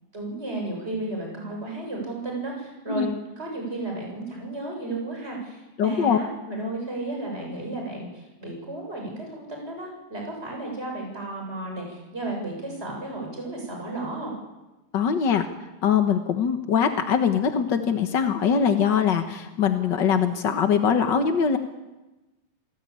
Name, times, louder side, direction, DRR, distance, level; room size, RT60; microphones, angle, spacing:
voice 1, 0.1-14.3, right 2 dB, 15° right, 0 dB, 7.6 m, -33 dB
voice 2, 5.8-6.2 14.9-15.4 15.8-21.6, left 7 dB, 60° left, 6 dB, 1.2 m, -22 dB
28.0 x 18.5 x 8.7 m, 1.1 s
omnidirectional pair, 3.9 m